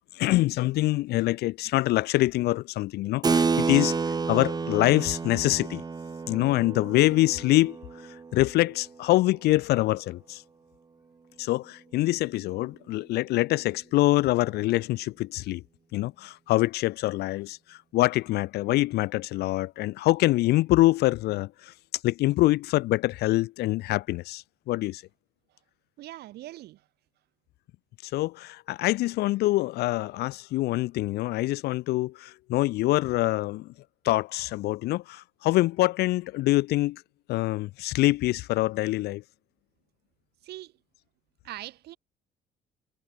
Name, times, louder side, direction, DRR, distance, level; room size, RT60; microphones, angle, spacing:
voice 1, 0.1-5.8 6.3-10.4 11.4-15.6 15.9-25.0 28.0-33.7 34.0-37.0 37.3-39.2, left 18 dB, 75° left, 0.5 m, -25 dB
Keyboard (musical), 3.2-9.3, right 4 dB, 25° right, 1.3 m, -30 dB
voice 2, 26.0-26.9 40.4-40.8 41.4-42.0, right 15 dB, 75° right, 1.7 m, -42 dB
cardioid pair, 110°, 17 cm